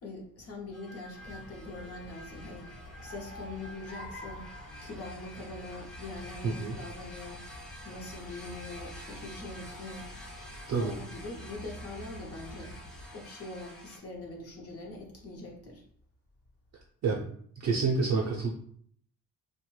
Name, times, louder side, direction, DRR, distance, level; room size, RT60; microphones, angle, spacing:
voice 1, 0.0-2.7 3.0-4.5 4.8-7.5 7.8-10.1 10.8-12.8 13.1-15.8, left 2 dB, 45° left, 0 dB, 0.7 m, -43 dB
sound 1, 0.7-14.0, left 1 dB, ahead, 0.5 m, -49 dB
sound 2, 1.1-13.1, equal, 70° left, 0.9 m, -48 dB
voice 2, 6.4-6.8 10.7-10.9 17.0-17.2 17.6-18.5, right 4 dB, 50° right, -3 dB, 0.5 m, -28 dB
2.9 x 2.2 x 3.1 m, 0.62 s
cardioid pair, 140°, 34 cm